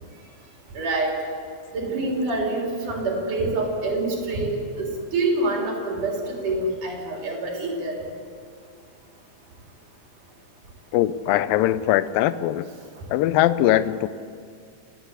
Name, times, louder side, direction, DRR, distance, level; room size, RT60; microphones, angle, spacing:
voice 1, 0.7-1.2 1.7-8.0, right 2 dB, 65° right, -1 dB, 5.1 m, -26 dB
voice 2, 10.9-12.7 13.1-14.1, left 13 dB, 90° left, 15 dB, 2.4 m, -21 dB
29.5 x 10.5 x 8.3 m, 2.2 s
omnidirectional pair, 3.9 m